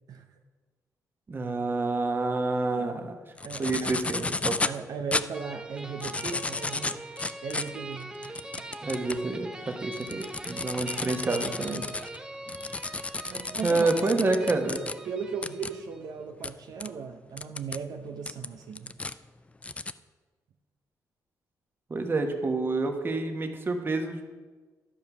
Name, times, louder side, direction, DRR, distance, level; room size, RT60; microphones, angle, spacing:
voice 1, 1.3-3.2 3.6-4.6 8.8-11.8 13.6-14.8 21.9-24.3, right 3 dB, 30° right, 4 dB, 1.2 m, -28 dB
sound 1, 3.4-4.8 5.1-5.3 5.8-9.2 9.7-14.9 15.4-15.7 16.4-16.5 16.8-16.9 17.4-17.8 18.3-19.1 19.6-19.9, left 3 dB, 20° left, 0.3 m, -33 dB
voice 2, 3.4-3.9 4.6-7.0 7.4-8.7 13.3-14.3 15.1-18.9, right 6 dB, 70° right, 4 dB, 0.7 m, -37 dB
sound 2, 5.3-16.1, right 1 dB, 10° right, 0.7 m, -42 dB
12.0 x 5.3 x 6.0 m, 1.4 s
cardioid pair, 100°, 7 cm